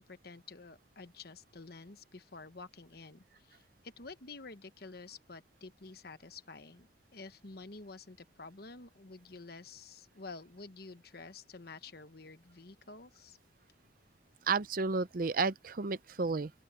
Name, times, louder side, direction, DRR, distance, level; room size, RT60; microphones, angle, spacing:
voice 1, 0.0-13.4, left 3 dB, 50° left, 1.1 m, -50 dB
voice 2, 14.5-16.5, right 4 dB, 45° right, 0.5 m, -32 dB
open air
head